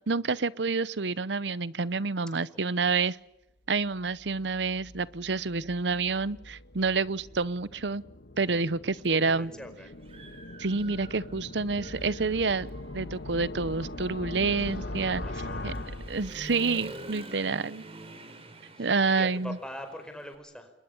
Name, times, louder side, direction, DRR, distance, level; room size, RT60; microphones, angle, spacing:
voice 1, 0.1-3.2 3.7-8.0 8.4-9.5 10.6-12.7 12.9-15.2 15.6-15.7 16.1-17.8 18.8-19.6, right 4 dB, 75° right, 19 dB, 0.8 m, -28 dB
voice 2, 2.5-2.9 6.9-7.1 8.8-9.9 15.2-16.0 18.7-20.7, equal, 5° left, 6 dB, 5.0 m, -44 dB
sound 1, 3.9-16.9, left 1 dB, 85° left, 1.8 m, -41 dB
Human voice / Motorcycle, 9.0-9.1 9.6-11.4 11.8-20.4, right 2 dB, 35° right, 3.8 m, -47 dB
29.0 x 22.0 x 7.1 m, 0.86 s
head